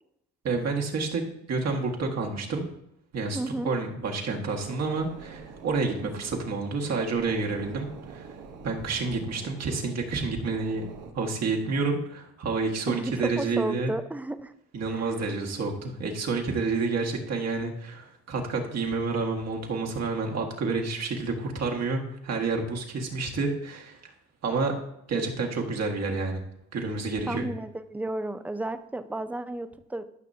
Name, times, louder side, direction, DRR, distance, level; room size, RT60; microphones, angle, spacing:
voice 1, 0.4-2.7 3.1-3.4 3.7-8.3 8.6-10.9 11.1-13.9 14.7-24.1 24.4-24.8 25.1-26.4 26.7-27.5, right 4 dB, 60° right, 1 dB, 1.7 m, -29 dB
voice 2, 3.3-3.7 12.9-14.5 14.9-15.3 27.3-30.1, right 2 dB, 5° right, 11 dB, 0.5 m, -33 dB
sound 1, 4.6-11.1, right 5 dB, 85° right, 1.1 m, -46 dB
13.0 x 6.1 x 2.8 m, 0.80 s
cardioid pair, 90°, 30 cm